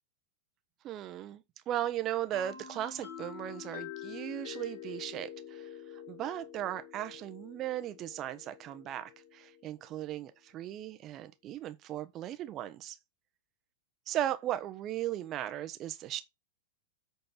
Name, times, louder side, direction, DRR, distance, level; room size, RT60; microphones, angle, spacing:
voice 1, 0.8-13.0 14.1-16.2, right 12 dB, 35° right, 1.2 m, -37 dB
sound 1, 2.3-10.0, left 8 dB, 65° left, 3.7 m, -47 dB
8.8 x 4.4 x 6.0 m
figure-of-eight pair, 95°, 0 cm